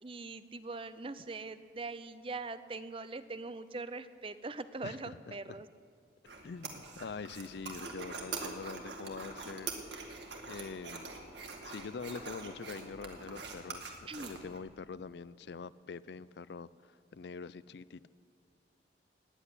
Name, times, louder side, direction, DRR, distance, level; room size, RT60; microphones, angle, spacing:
voice 1, 0.0-5.7 14.1-14.4, right 3 dB, 30° right, 13 dB, 0.6 m, -42 dB
voice 2, 4.8-5.6 6.4-10.0 10.5-11.1 11.6-18.1, left 4 dB, 65° left, 17 dB, 0.4 m, -45 dB
sound 1, 6.3-14.6, right 4 dB, 75° right, 2.0 m, -44 dB
18.0 x 8.2 x 9.7 m, 2.1 s
head